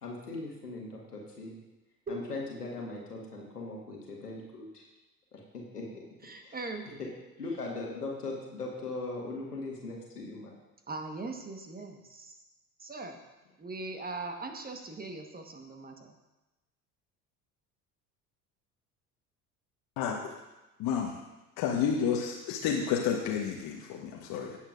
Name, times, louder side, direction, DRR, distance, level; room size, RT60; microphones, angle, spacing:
voice 1, 0.0-1.5 2.1-4.8 5.3-6.0 6.4-6.5 7.0-7.1 7.4-10.5, left 3 dB, 85° left, -1 dB, 1.8 m, -39 dB
voice 2, 6.2-7.1 10.9-12.4 12.8-13.2 13.6-16.1, right 3 dB, 20° right, 4 dB, 1.4 m, -40 dB
voice 3, 20.0-20.3 20.8-21.2 21.6-24.6, left 7 dB, 50° left, 0 dB, 1.3 m, -30 dB
17.0 x 7.3 x 2.6 m, 1.0 s
figure-of-eight pair, 60°, 45 cm